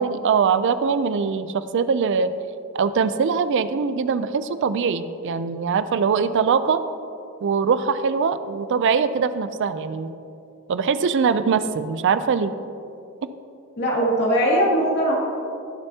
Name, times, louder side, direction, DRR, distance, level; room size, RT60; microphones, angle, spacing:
voice 1, 0.0-2.3 2.7-6.8 7.4-10.1 10.7-12.5, right 5 dB, 55° right, 12 dB, 0.4 m, -22 dB
voice 2, 13.8-15.1, equal, 50° left, -4 dB, 2.3 m, -20 dB
16.5 x 6.9 x 2.8 m, 2.6 s
head